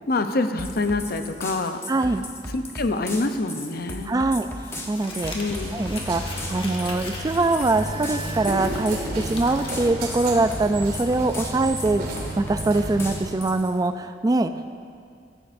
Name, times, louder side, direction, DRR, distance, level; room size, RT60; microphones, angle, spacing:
voice 1, 0.1-1.8 2.5-4.2 5.3-5.7, left 2 dB, 60° left, 8 dB, 0.7 m, -26 dB
sound 1, 0.6-13.7, left 1 dB, 15° left, 0.9 m, -37 dB
voice 2, 1.9-2.3 4.0-4.5 4.9-5.3 5.7-12.0 12.4-14.7, right 2 dB, 20° right, 9 dB, 0.3 m, -23 dB
Crumpling crinkling, 4.3-9.8, left 2 dB, 30° left, 1.6 m, -40 dB
sound 2, 5.5-13.2, right 1 dB, 55° right, 3.1 m, -32 dB
15.0 x 14.5 x 2.6 m, 2.3 s
head